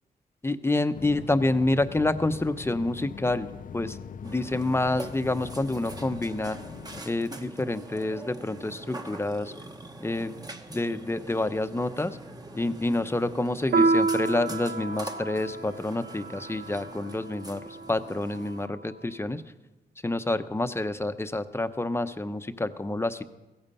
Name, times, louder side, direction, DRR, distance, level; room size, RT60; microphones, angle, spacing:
voice 1, 0.4-3.5 3.7-4.0 4.2-6.6 7.1-9.5 10.0-10.4 10.7-12.2 12.5-19.4 20.0-23.2, left 2 dB, 15° left, 10 dB, 0.7 m, -28 dB
sound 1, 0.9-7.0, left 7 dB, 55° left, 0.5 m, -42 dB
Burping eructation, 4.2-18.7, right 2 dB, 20° right, 1.1 m, -44 dB
Piano, 13.7-18.7, right 3 dB, 80° right, 0.9 m, -29 dB
16.5 x 14.5 x 5.5 m, 1.1 s
wide cardioid pair, 115°, 17 cm